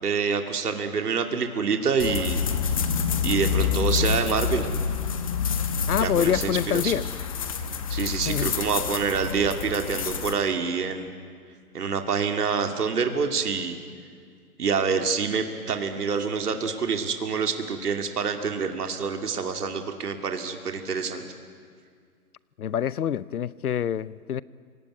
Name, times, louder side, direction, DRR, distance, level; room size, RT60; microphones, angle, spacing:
voice 1, 0.0-2.4 3.2-4.7 6.0-6.9 7.9-11.1 11.7-13.8 14.6-21.3, right 5 dB, 75° right, 2.6 m, -26 dB
sound 1, 2.0-10.3, left 6 dB, 20° left, 1.0 m, -27 dB
voice 2, 5.9-7.0 8.3-8.5 22.6-24.4, left 9 dB, 70° left, 0.8 m, -26 dB
29.0 x 18.0 x 9.5 m
hypercardioid pair, 170°, 47 cm